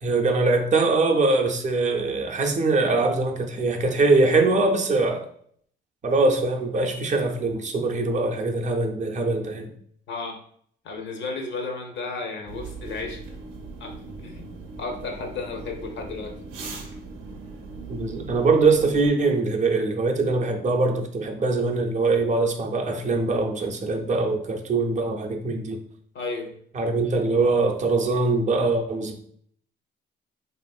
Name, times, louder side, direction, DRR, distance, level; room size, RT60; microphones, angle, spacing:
voice 1, 0.0-5.3 6.0-9.7 17.9-25.8 26.7-29.2, right 3 dB, 35° right, 3 dB, 0.4 m, -22 dB
voice 2, 10.1-10.4 10.8-13.2 13.8-13.9 14.2-14.5 14.8-16.3 26.1-26.6, left 3 dB, 65° left, 3 dB, 0.6 m, -33 dB
sound 1, 12.5-19.1, right 3 dB, 85° right, 0.5 m, -39 dB
2.8 x 2.5 x 2.3 m, 0.62 s
cardioid pair, 90°, 20 cm